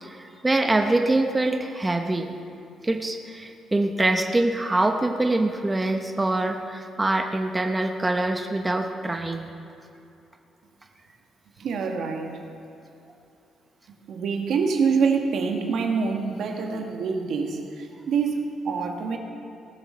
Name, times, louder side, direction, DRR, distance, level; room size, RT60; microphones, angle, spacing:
voice 1, 0.0-2.3 2.8-9.5, right 2 dB, 15° right, 4 dB, 0.9 m, -24 dB
voice 2, 11.6-12.4 14.1-19.2, right 5 dB, 70° right, 3 dB, 1.6 m, -26 dB
18.5 x 7.3 x 6.3 m, 2.7 s
cardioid pair, 90°, 0 cm